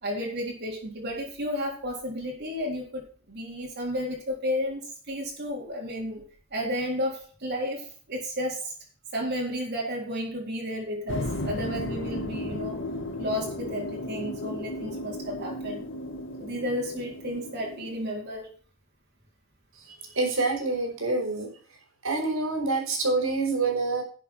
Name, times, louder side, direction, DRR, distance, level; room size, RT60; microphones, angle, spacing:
voice 1, 0.0-6.2 6.5-8.7 9.1-12.8 13.2-15.8 16.4-18.5, equal, 55° right, -2 dB, 3.8 m, -32 dB
sound 1, 11.1-18.0, left 1 dB, 65° left, 1.8 m, -35 dB
voice 2, 19.8-21.5 22.0-24.0, right 3 dB, 80° right, 1 dB, 5.3 m, -27 dB
11.0 x 7.6 x 6.0 m, 0.41 s
head